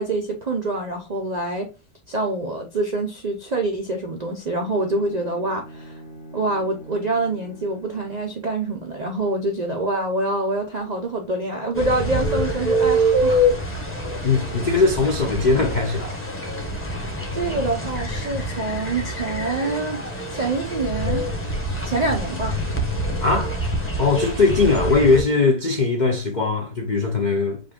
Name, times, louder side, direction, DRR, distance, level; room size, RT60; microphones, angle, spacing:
voice 1, 0.0-1.7 2.1-6.0 6.3-13.5 16.7-20.0 20.3-21.2 21.8-22.6, right 2 dB, 75° right, 0.4 m, -26 dB
Bowed string instrument, 4.4-8.5, equal, 45° left, 1.1 m, -43 dB
sound 1, 11.7-25.2, equal, 10° left, 0.6 m, -25 dB
voice 2, 14.2-16.1 23.2-23.5 24.0-27.6, left 3 dB, 75° left, 0.4 m, -20 dB
5.2 x 2.5 x 3.5 m
omnidirectional pair, 1.7 m